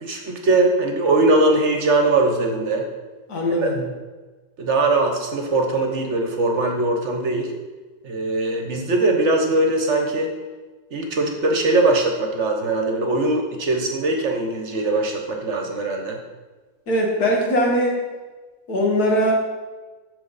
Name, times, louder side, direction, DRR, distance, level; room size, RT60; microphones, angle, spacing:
voice 1, 0.0-2.8 3.6-3.7 4.6-7.5 8.0-10.3 10.9-16.2, right 2 dB, 55° right, 3 dB, 1.2 m, -21 dB
voice 2, 3.3-3.9 16.9-18.0 18.7-19.3, equal, 80° left, -1 dB, 2.1 m, -20 dB
12.5 x 4.5 x 4.0 m, 1.3 s
omnidirectional pair, 1.6 m